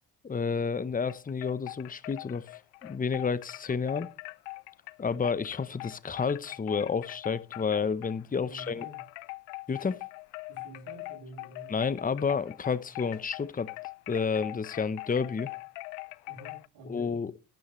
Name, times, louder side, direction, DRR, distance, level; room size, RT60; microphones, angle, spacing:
voice 1, 0.2-4.1 5.0-8.9 9.7-10.0 11.7-13.7 14.1-15.5 16.8-17.3, left 5 dB, 20° left, 0.8 m, -30 dB
sound 1, 1.1-8.2 8.6-16.7, left 26 dB, 85° left, 0.5 m, -42 dB
voice 2, 8.5-9.0 10.5-11.7 16.3-17.1, right 2 dB, 65° right, 6.8 m, -48 dB
11.5 x 9.6 x 3.1 m
supercardioid pair, 55°, 43 cm